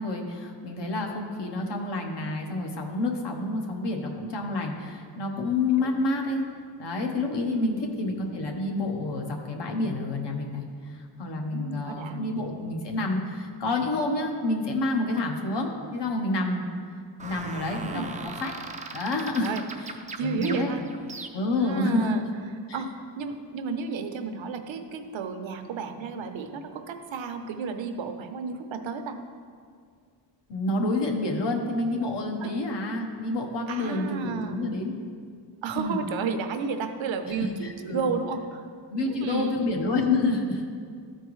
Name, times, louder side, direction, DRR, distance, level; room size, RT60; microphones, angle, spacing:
voice 1, 0.0-6.4 6.8-16.6 17.2-18.5 18.9-19.5 19.8-19.9 20.2-20.7 21.3-22.2 22.7-22.8 30.5-34.9 35.7-36.0 37.4-38.1 38.9-40.7, left 2 dB, 65° left, 2 dB, 1.1 m, -28 dB
voice 2, 7.5-7.9 11.5-12.3 17.9-18.1 19.4-19.6 20.2-20.8 21.6-22.2 22.7-29.2 32.4-32.5 33.7-34.6 35.6-38.7 39.0-39.6, right 5 dB, 85° right, 7 dB, 0.7 m, -32 dB
sound 1, 17.2-21.7, right 4 dB, 20° right, 0.3 m, -39 dB
13.0 x 4.5 x 3.1 m, 2.1 s
wide cardioid pair, 135°, 45 cm